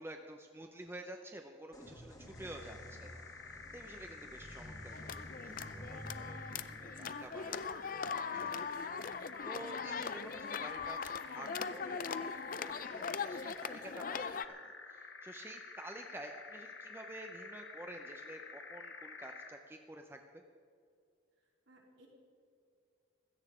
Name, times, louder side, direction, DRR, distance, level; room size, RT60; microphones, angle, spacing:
voice 1, 0.0-7.6 8.3-20.4, right 1 dB, 10° right, 4 dB, 0.6 m, -50 dB
sound 1, 1.7-9.3, equal, 20° left, 1.6 m, -52 dB
sound 2, 2.2-19.7, left 4 dB, 60° left, 1.4 m, -50 dB
sound 3, 4.9-14.4, left 6 dB, 45° left, 0.4 m, -40 dB
voice 2, 7.4-8.3 21.7-22.1, right 1 dB, 65° right, -2 dB, 3.8 m, -61 dB
16.5 x 13.5 x 5.0 m, 2.3 s
head